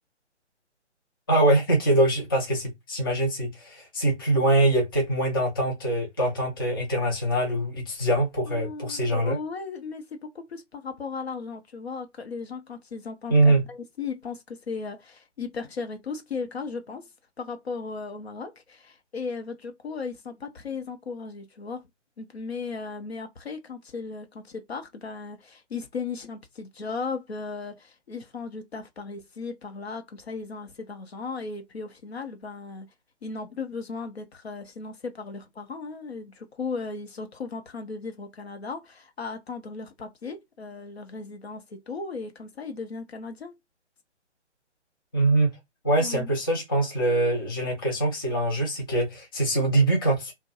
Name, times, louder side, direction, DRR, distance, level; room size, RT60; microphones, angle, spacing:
voice 1, 1.3-9.4 13.3-13.6 45.1-45.5 45.8-50.3, right 1 dB, 20° left, 0.5 m, -23 dB
voice 2, 8.4-17.1 17.4-21.8 22.2-32.9 33.2-43.5 46.0-46.3, left 4 dB, 60° left, 0.7 m, -36 dB
2.5 x 2.1 x 2.8 m
figure-of-eight pair, 140°, 36 cm